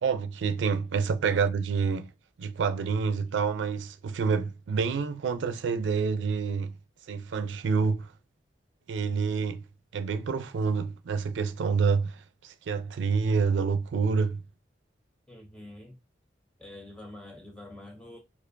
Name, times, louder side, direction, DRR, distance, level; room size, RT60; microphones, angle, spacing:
voice 1, 0.0-2.1 2.4-6.7 7.1-8.1 8.9-9.6 9.9-14.4, right 5 dB, 85° right, 0.4 m, -28 dB
voice 2, 1.1-1.5 15.3-16.0 16.6-18.2, left 1 dB, 5° left, 0.3 m, -46 dB
4.4 x 2.4 x 2.5 m
head